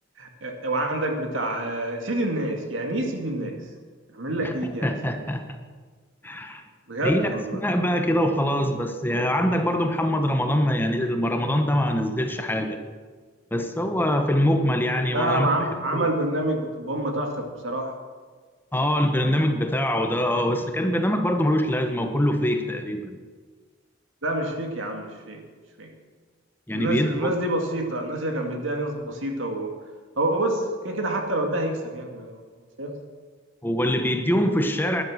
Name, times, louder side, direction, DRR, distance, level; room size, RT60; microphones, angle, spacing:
voice 1, 0.2-3.5 4.1-5.2 6.9-7.6 15.1-18.0 24.2-25.4 25.8-25.9 26.7-29.7 30.2-32.4 32.8-32.9, right 1 dB, 90° right, 3 dB, 2.2 m, -27 dB
voice 2, 4.8-5.6 6.2-6.6 7.0-12.8 13.5-15.5 15.9-16.1 18.7-23.2 26.7-27.3 33.6-35.0, equal, 10° left, 6 dB, 1.0 m, -24 dB
12.0 x 11.0 x 6.4 m, 1.5 s
head